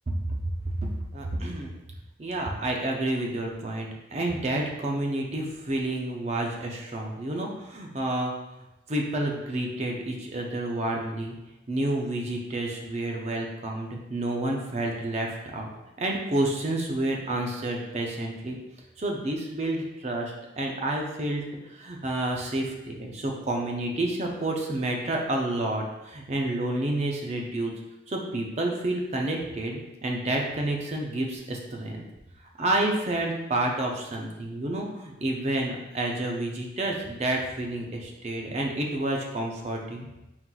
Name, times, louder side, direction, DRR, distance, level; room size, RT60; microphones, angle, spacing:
voice 1, 0.7-1.7 2.2-8.3 8.9-11.4 11.7-15.7 16.0-18.6 19.0-27.7 28.1-32.0 32.6-40.1, right 1 dB, 35° right, 0 dB, 0.5 m, -29 dB
4.3 x 3.8 x 2.3 m, 0.96 s
head